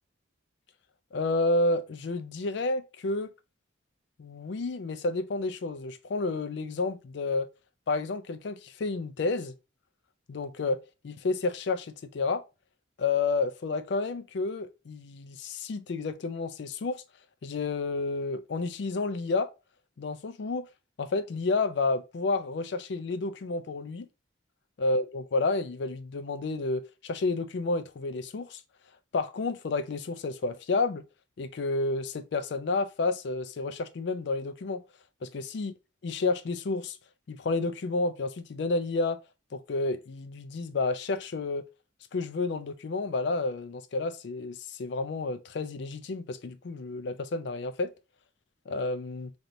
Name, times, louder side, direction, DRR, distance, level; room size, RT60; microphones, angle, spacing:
voice 1, 1.1-3.3 4.2-7.5 7.9-9.5 10.3-12.4 13.0-17.0 17.4-19.5 20.0-20.7 21.0-24.1 24.8-28.6 29.1-31.0 31.4-34.8 35.2-35.7 36.0-37.0 37.3-39.2 39.5-41.6 42.1-47.9 48.7-49.3, left 3 dB, 60° left, 0.4 m, -30 dB
3.2 x 2.8 x 2.6 m
head